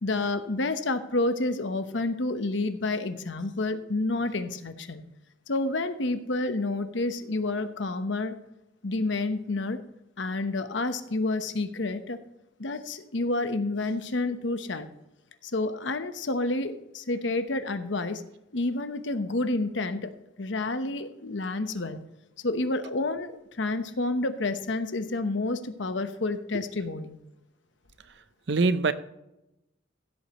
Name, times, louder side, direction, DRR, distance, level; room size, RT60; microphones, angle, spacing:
voice 1, 0.0-5.0 5.5-8.3 8.8-9.8 10.2-12.2 12.6-14.9 15.4-18.2 18.5-20.1 20.4-22.0 22.4-27.2, left 2 dB, 75° left, 9 dB, 1.0 m, -29 dB
voice 2, 28.0-28.9, right 3 dB, 65° right, 13 dB, 0.7 m, -26 dB
15.5 x 8.4 x 3.0 m, 0.90 s
head